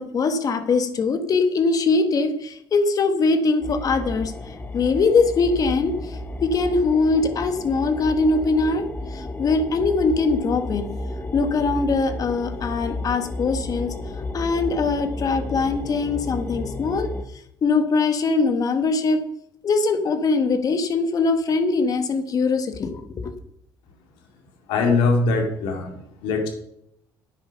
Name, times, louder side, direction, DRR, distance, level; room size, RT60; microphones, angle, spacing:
voice 1, 0.0-8.9 9.1-10.9 11.3-13.9 14.3-17.1 17.6-19.2 19.6-23.3, left 4 dB, 45° left, 8 dB, 1.4 m, -22 dB
sound 1, 3.6-17.2, left 2 dB, 20° left, 1.1 m, -32 dB
voice 2, 24.7-26.5, left 3 dB, 85° left, 3 dB, 2.4 m, -22 dB
9.2 x 7.8 x 5.6 m, 0.76 s
cardioid pair, 95°, 8 cm